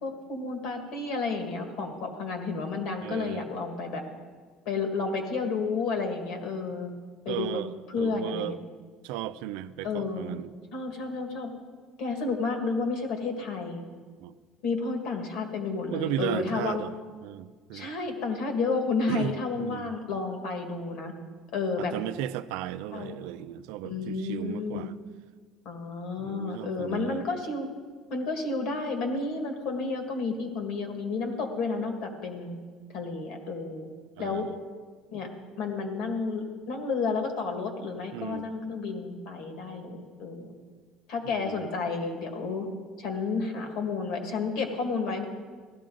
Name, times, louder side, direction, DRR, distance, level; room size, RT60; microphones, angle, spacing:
voice 1, 0.0-4.0 4.7-6.9 7.3-7.5 7.9-8.5 9.8-10.3 10.7-11.5 12.0-13.8 14.6-16.8 17.7-21.1 21.5-21.9 22.9-23.1 23.8-24.9 25.7-27.7 28.1-32.6 32.9-33.9 34.2-34.5 35.1-35.3 35.6-40.5 41.1-42.7 43.0-45.3, left 4 dB, 60° left, 4 dB, 1.9 m, -31 dB
voice 2, 3.0-3.4 7.3-8.6 9.0-10.5 14.2-14.4 15.9-16.9 17.2-17.9 19.1-19.9 21.8-24.9 26.2-27.2 34.2-34.6 38.1-38.5 41.2-41.6, right 12 dB, 90° right, 12 dB, 0.5 m, -35 dB
16.0 x 12.5 x 3.8 m, 1.5 s
cardioid pair, 165°, 0 cm